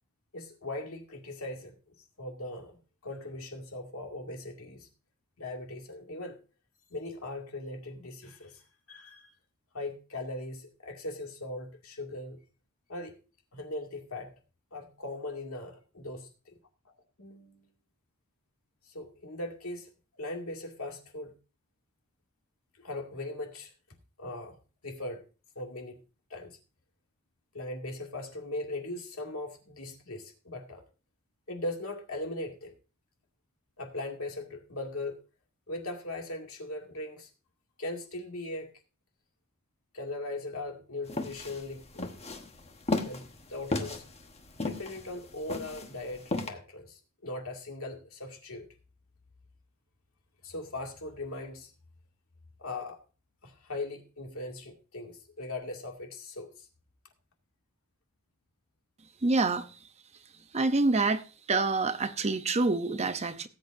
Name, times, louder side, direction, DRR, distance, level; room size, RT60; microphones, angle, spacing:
voice 1, 0.3-1.8 2.2-2.8 3.0-4.9 5.4-6.4 6.9-8.6 8.9-9.3 9.7-12.5 12.9-13.2 13.5-14.3 14.7-16.6 17.2-17.7 18.8-19.9 20.2-21.3 22.8-23.7 24.2-24.6 24.8-25.2 25.6-26.0 26.3-26.6 27.5-30.8 31.5-32.7 33.8-35.2 35.7-37.3 37.8-38.7 39.9-42.1 43.0-44.0 44.6-48.7 50.4-51.7 52.6-53.0 53.4-56.7, left 2 dB, 70° left, 2.3 m, -39 dB
sound 1, 41.1-46.5, left 2 dB, 30° left, 1.2 m, -34 dB
voice 2, 59.2-59.7 60.5-61.2 61.5-63.5, right 3 dB, 30° right, 0.7 m, -26 dB
18.5 x 8.4 x 2.6 m
head